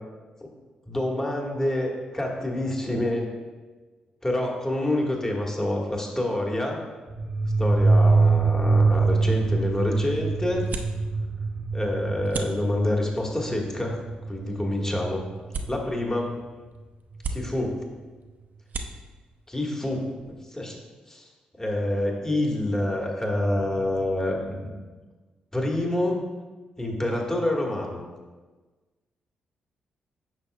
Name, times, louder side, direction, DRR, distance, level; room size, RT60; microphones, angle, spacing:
voice 1, 0.9-3.3 4.2-6.8 7.6-10.7 11.7-14.0 14.3-15.2 15.7-16.4 17.3-17.8 19.5-20.1 20.5-20.8 21.1-21.3 21.6-24.7 25.5-26.3 26.8-28.0, left 1 dB, 15° left, -1 dB, 1.5 m, -27 dB
sound 1, 7.1-15.5, right 3 dB, 40° right, 0.9 m, -24 dB
sound 2, 9.2-20.8, right 3 dB, 60° right, 0.6 m, -41 dB
9.0 x 5.5 x 2.3 m, 1.3 s
hypercardioid pair, 40°, 3 cm